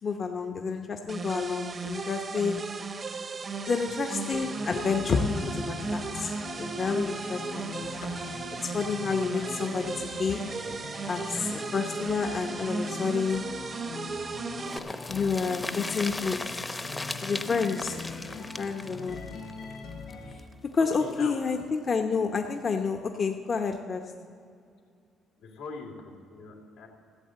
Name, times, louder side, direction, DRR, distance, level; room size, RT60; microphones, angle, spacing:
voice 1, 0.0-2.7 3.7-8.1 8.6-10.5 11.1-13.5 15.1-16.8 17.2-18.0 18.4-19.3 20.3-20.4 20.7-24.2, left 5 dB, 50° left, 4 dB, 0.9 m, -30 dB
sound 1, 1.1-14.8, right 4 dB, 40° right, 0.8 m, -35 dB
sound 2, 4.3-20.3, left 4 dB, 65° left, 3.3 m, -42 dB
voice 2, 7.8-8.3 21.0-21.4 25.4-26.9, left 4 dB, 85° left, 0 dB, 2.5 m, -42 dB
sound 3, 14.7-20.4 20.7-20.8 21.1-21.2, left 2 dB, 20° left, 0.8 m, -37 dB
14.5 x 7.9 x 7.6 m, 2.3 s
supercardioid pair, 65°, 0 cm